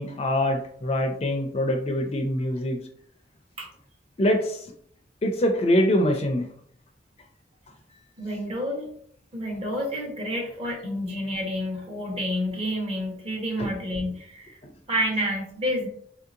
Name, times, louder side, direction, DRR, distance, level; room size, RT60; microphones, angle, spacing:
voice 1, 0.0-2.8 4.2-4.6 5.2-6.5 7.9-8.0 13.6-13.7, left 1 dB, 35° left, 4 dB, 0.4 m, -24 dB
voice 2, 8.2-8.9 9.3-14.6 14.9-15.9, equal, 35° right, -1 dB, 1.0 m, -29 dB
4.1 x 2.8 x 2.5 m, 0.64 s
head